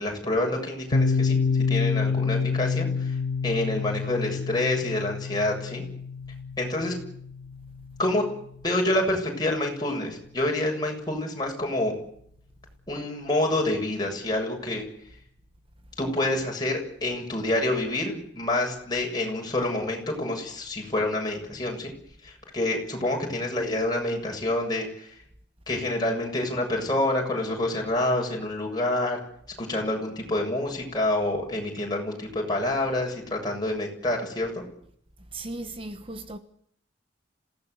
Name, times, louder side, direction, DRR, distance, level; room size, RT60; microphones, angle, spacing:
voice 1, 0.0-3.2 3.4-5.8 6.6-6.9 8.0-8.2 8.6-11.9 12.9-14.9 16.0-21.9 22.2-25.2 25.7-29.2 29.6-34.6, left 1 dB, 20° left, 7.5 m, -27 dB
Piano, 0.9-8.4, left 5 dB, 80° left, 1.5 m, -28 dB
voice 2, 35.3-36.4, right 2 dB, 30° right, 1.2 m, -36 dB
27.0 x 17.5 x 8.4 m
head